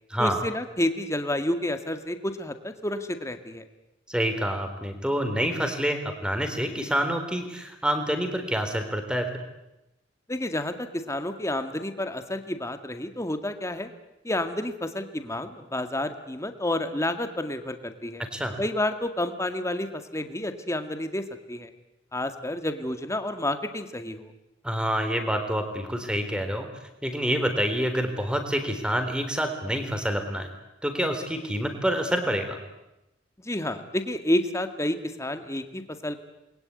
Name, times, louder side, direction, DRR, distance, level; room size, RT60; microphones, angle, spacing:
voice 1, 0.2-3.6 10.3-13.9 14.2-18.2 18.6-21.7 22.1-24.3 33.4-36.2, left 1 dB, 15° left, 8 dB, 1.9 m, -30 dB
voice 2, 4.1-9.3 18.3-18.5 24.6-26.7 27.0-30.5 30.8-32.6, equal, 5° right, 7 dB, 3.8 m, -27 dB
28.5 x 22.0 x 9.6 m, 0.92 s
head